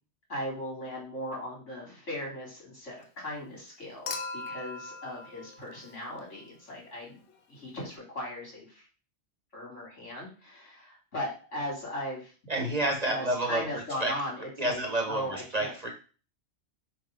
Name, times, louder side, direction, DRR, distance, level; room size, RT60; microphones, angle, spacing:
voice 1, 0.3-7.2 7.5-8.8 9.5-12.3 12.8-14.8 15.1-15.7, left 1 dB, 80° left, -4 dB, 3.6 m, -38 dB
Human group actions / Chink clink / Liquid, 4.1-6.4 7.9-8.0, left 3 dB, 55° left, 0.8 m, -40 dB
voice 2, 12.5-14.1 14.6-15.9, right 1 dB, 35° right, 2 dB, 1.2 m, -30 dB
7.0 x 3.0 x 5.1 m, 0.38 s
omnidirectional pair, 1.2 m